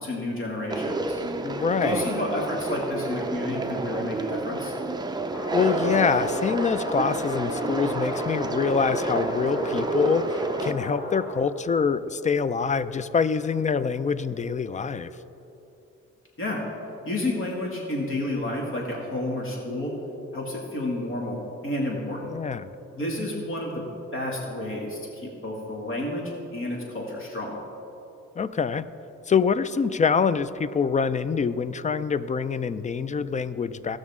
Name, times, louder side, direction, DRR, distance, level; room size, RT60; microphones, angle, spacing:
voice 1, 0.0-1.2 1.8-4.7 16.4-16.6 17.1-19.9 20.3-22.3 23.0-23.8 24.1-27.6, left 1 dB, 45° left, -2 dB, 2.2 m, -30 dB
Conversation, 0.7-10.7, right 2 dB, 15° right, 0.6 m, -29 dB
voice 2, 1.4-2.1 5.5-15.1 22.3-22.7 28.4-28.8 29.3-34.0, left 5 dB, 25° left, 14 dB, 0.4 m, -25 dB
sound 1, 5.3-11.4, left 1 dB, 85° left, 2.6 m, -34 dB
18.0 x 6.3 x 3.6 m, 3.0 s
cardioid pair, 90°, 30 cm